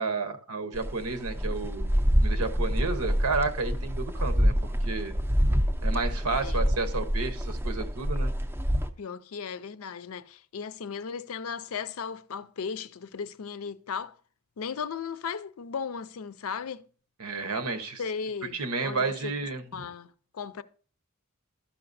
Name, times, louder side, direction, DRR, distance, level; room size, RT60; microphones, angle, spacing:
voice 1, 0.0-1.9 2.2-5.1 5.8-8.3 17.2-18.0 18.5-19.9, right 3 dB, 85° right, 1.0 m, -31 dB
sound 1, 0.7-8.9, equal, 10° right, 0.5 m, -27 dB
voice 2, 9.0-14.2 14.6-16.8 18.0-19.3 19.7-20.6, left 6 dB, 70° left, 0.5 m, -36 dB
13.0 x 5.8 x 2.6 m
head